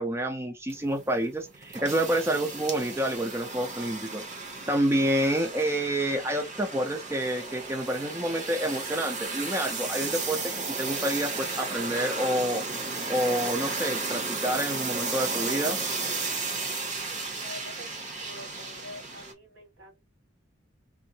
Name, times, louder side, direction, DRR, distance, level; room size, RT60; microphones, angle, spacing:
voice 1, 0.0-4.4 4.7-12.6 13.1-15.8, right 1 dB, 15° right, 0.5 m, -28 dB
sound 1, 0.7-19.3, right 3 dB, 40° right, 0.8 m, -34 dB
voice 2, 17.1-20.0, left 1 dB, 75° right, 1.8 m, -46 dB
3.7 x 2.0 x 2.7 m
head